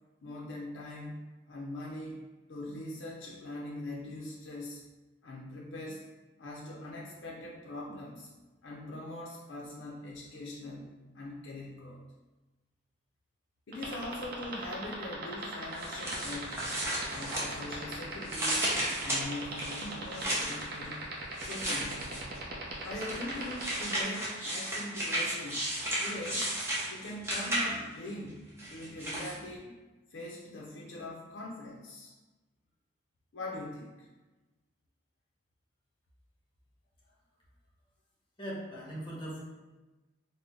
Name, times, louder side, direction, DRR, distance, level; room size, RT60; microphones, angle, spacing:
voice 1, 0.2-4.8 5.2-6.0 6.4-8.3 8.6-12.0 13.7-16.6 17.1-18.7 19.0-21.1 21.4-22.2 22.8-25.7 26.0-26.5 26.9-28.4 28.7-29.8 30.1-32.1 33.3-34.1, left 1 dB, 85° left, -3 dB, 0.5 m, -42 dB
sound 1, 13.7-24.0, right 3 dB, 55° right, 0.6 m, -39 dB
sound 2, 15.8-17.9 18.2-20.6 21.3-22.4 22.9-28.0 28.6-29.3, right 1 dB, 15° right, 0.7 m, -34 dB
voice 2, 38.4-39.4, right 1 dB, 25° left, -5 dB, 0.8 m, -39 dB
3.7 x 2.1 x 3.3 m, 1.2 s
head